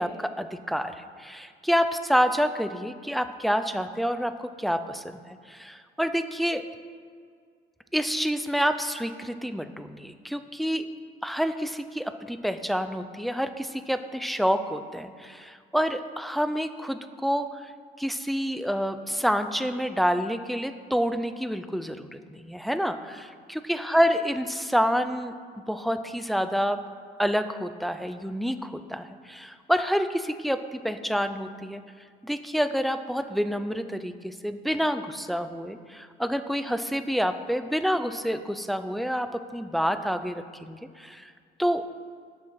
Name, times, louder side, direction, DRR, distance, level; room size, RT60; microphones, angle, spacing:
voice 1, 0.0-5.2 5.5-6.6 7.9-10.9 11.2-17.7 18.0-26.8 27.2-31.8 32.2-41.3 41.6-41.8, equal, ahead, 10 dB, 0.4 m, -28 dB
8.4 x 6.2 x 6.1 m, 2.1 s
cardioid pair, 110°, 17 cm